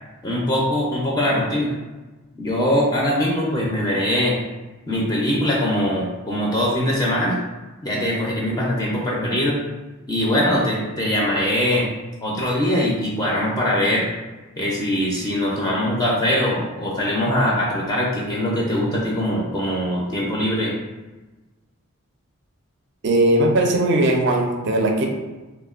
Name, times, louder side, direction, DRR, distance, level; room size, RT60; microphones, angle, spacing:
voice 1, 0.2-1.8 2.4-4.4 4.9-7.4 7.8-9.6 10.1-11.9 12.2-14.1 14.6-20.7, left 1 dB, 15° left, -4 dB, 0.3 m, -22 dB
voice 2, 23.0-25.1, right 1 dB, 50° right, 2 dB, 0.4 m, -18 dB
3.2 x 2.1 x 2.3 m, 1.2 s
head